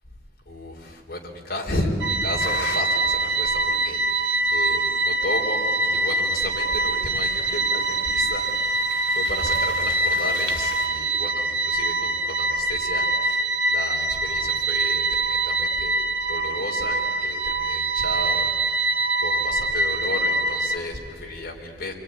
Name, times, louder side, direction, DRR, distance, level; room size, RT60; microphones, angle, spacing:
voice 1, 0.5-8.9 9.1-13.4 13.7-16.0 16.3-18.5 19.2-21.9, left 1 dB, 55° left, 0 dB, 4.1 m, -33 dB
sound 1, 2.0-20.8, right 2 dB, 80° right, 1.1 m, -24 dB
Bike driving by and breaks on gravel walk, 2.4-10.9, left 4 dB, 80° left, 2.3 m, -42 dB
27.0 x 22.0 x 9.9 m, 2.6 s
head